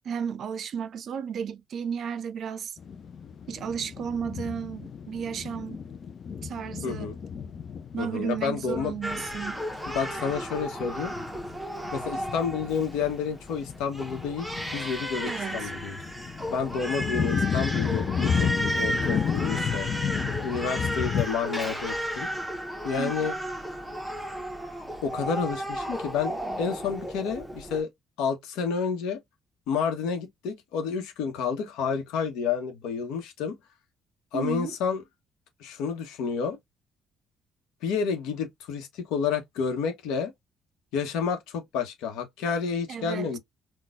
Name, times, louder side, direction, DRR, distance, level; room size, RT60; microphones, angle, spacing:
voice 1, 0.0-2.8 3.5-5.8 6.4-7.1 7.9-9.6 15.3-15.7 23.0-23.3 34.3-34.8 42.9-43.4, right 7 dB, 55° right, 0.4 m, -33 dB
sound 1, 2.8-21.2, left 7 dB, 50° left, 0.5 m, -33 dB
voice 2, 6.8-7.2 8.0-8.9 9.9-11.1 11.9-14.5 14.7-16.0 16.5-19.9 20.4-22.3 22.8-23.3 25.0-27.9 28.2-29.2 29.7-33.6 34.3-35.0 35.6-36.6 37.8-40.3 40.9-43.4, left 6 dB, 90° left, 1.0 m, -30 dB
Crying sobbing, 9.0-27.8, equal, ahead, 0.9 m, -34 dB
4.2 x 2.3 x 2.4 m
cardioid pair, 95°, 0 cm